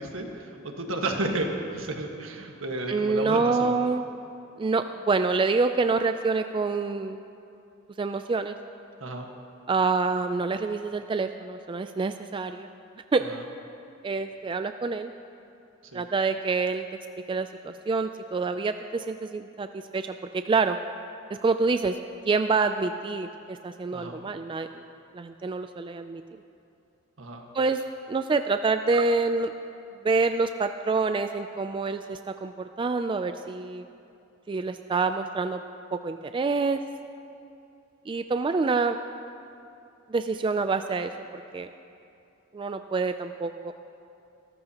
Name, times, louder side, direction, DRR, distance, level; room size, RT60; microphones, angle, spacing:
voice 1, 0.0-3.7 9.0-9.3 13.3-13.4 15.8-16.0 23.9-24.2 27.2-27.4, right 1 dB, 80° right, 2 dB, 1.6 m, -32 dB
voice 2, 2.9-4.0 4.6-7.2 8.0-8.6 9.7-12.7 13.1-13.2 14.0-15.1 15.9-16.9 17.3-19.7 19.9-20.8 21.4-22.0 22.3-24.8 25.1-26.2 27.5-27.8 28.1-29.5 30.0-33.9 34.5-35.6 35.9-36.8 38.1-39.0 40.1-41.7 42.5-43.7, right 4 dB, 25° right, 8 dB, 0.3 m, -27 dB
25.5 x 13.5 x 2.9 m, 2.7 s
head